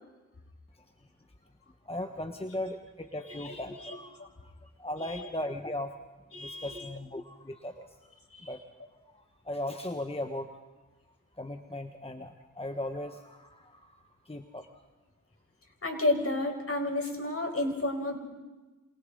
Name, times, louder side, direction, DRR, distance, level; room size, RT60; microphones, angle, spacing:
voice 1, 0.7-1.1 1.8-5.9 6.4-8.1 8.4-8.6 9.1-10.6 11.3-14.8, left 1 dB, 20° left, 5 dB, 1.5 m, -38 dB
voice 2, 3.3-4.3 5.0-5.3 6.3-6.8 8.3-8.5 15.8-18.2, left 2 dB, 45° left, 3 dB, 5.2 m, -32 dB
28.5 x 27.0 x 4.0 m, 1.2 s
cardioid pair, 40°, 31 cm